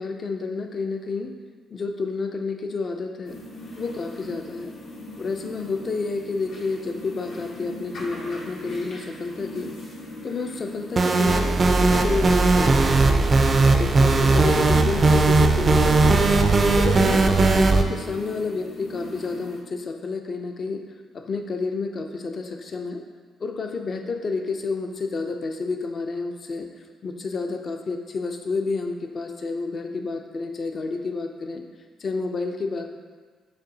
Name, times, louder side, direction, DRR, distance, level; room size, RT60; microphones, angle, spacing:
voice 1, 0.0-1.3 1.7-3.4 3.8-4.7 5.2-9.7 10.2-13.2 13.8-16.2 16.8-20.8 21.1-23.0 23.4-26.7 27.0-31.6 32.0-32.9, left 4 dB, 45° left, 4 dB, 0.4 m, -30 dB
sound 1, 3.2-19.6, left 1 dB, 75° left, 1.0 m, -40 dB
sound 2, 11.0-17.8, right 3 dB, 40° right, 0.3 m, -18 dB
6.5 x 2.7 x 2.7 m, 1.5 s
cardioid pair, 90°, 0 cm